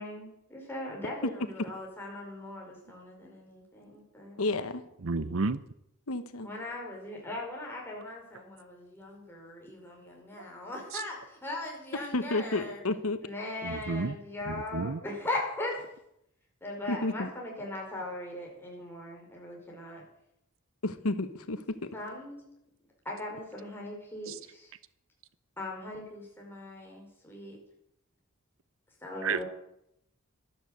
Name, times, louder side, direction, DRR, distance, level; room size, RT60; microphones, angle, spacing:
voice 1, 0.0-4.4 6.4-12.8 13.2-15.9 16.6-20.1 21.9-22.4 23.1-24.7 25.6-27.6 29.0-29.4, left 1 dB, 10° left, -2 dB, 5.0 m, -39 dB
voice 2, 4.4-4.8 6.1-6.5 11.9-13.2 16.9-17.3 20.8-21.9, left 2 dB, 85° left, 10 dB, 1.1 m, -31 dB
voice 3, 5.0-5.6 10.9-11.0 13.6-14.1 14.5-15.0 24.3-24.4 29.2-29.4, right 4 dB, 65° right, 16 dB, 0.7 m, -31 dB
13.0 x 12.0 x 7.9 m, 0.79 s
head